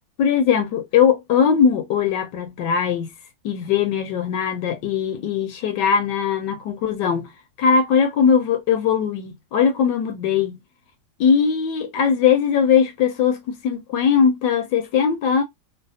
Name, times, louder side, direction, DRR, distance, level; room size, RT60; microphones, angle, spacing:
voice 1, 0.2-3.1 3.4-7.3 7.6-10.6 11.2-15.4, left 7 dB, 75° left, 1.2 m, -20 dB
3.2 x 2.0 x 2.6 m
omnidirectional pair, 2.0 m